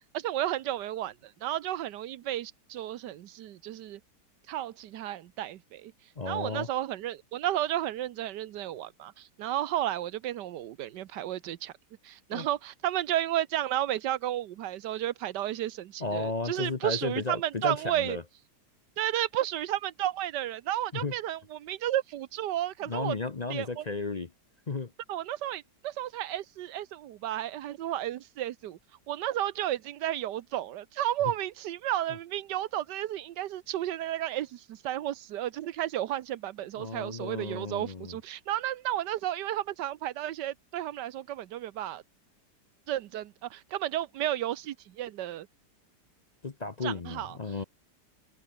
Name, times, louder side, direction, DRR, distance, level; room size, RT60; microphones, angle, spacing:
voice 1, 0.1-4.0 4.5-5.9 6.2-11.7 12.0-18.2 19.0-23.1 23.5-23.8 25.1-28.8 29.1-42.0 42.9-45.5 46.8-47.4, right 12 dB, 85° right, 1.4 m, -32 dB
voice 2, 6.2-6.7 12.3-12.5 16.0-18.2 20.9-21.1 22.9-24.3 24.7-24.9 36.8-38.2 46.4-47.6, left 3 dB, 35° left, 0.8 m, -34 dB
omnidirectional pair, 1.8 m